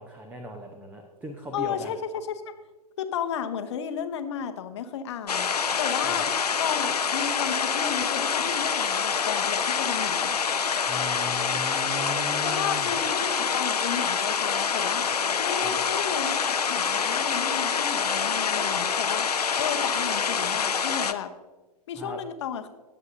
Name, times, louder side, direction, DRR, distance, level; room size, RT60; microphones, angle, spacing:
voice 1, 0.0-1.9 6.0-6.3 10.9-12.9 15.6-15.8 21.9-22.2, equal, 10° right, 3 dB, 0.8 m, -38 dB
voice 2, 1.5-2.5 3.0-5.5 5.8-6.2 6.6-10.4 12.4-21.3 21.9-22.7, left 8 dB, 45° left, 8 dB, 0.9 m, -33 dB
sound 1, 5.3-21.1, left 6 dB, 70° left, 0.7 m, -26 dB
20.0 x 8.1 x 2.7 m, 1.3 s
figure-of-eight pair, 115°, 21 cm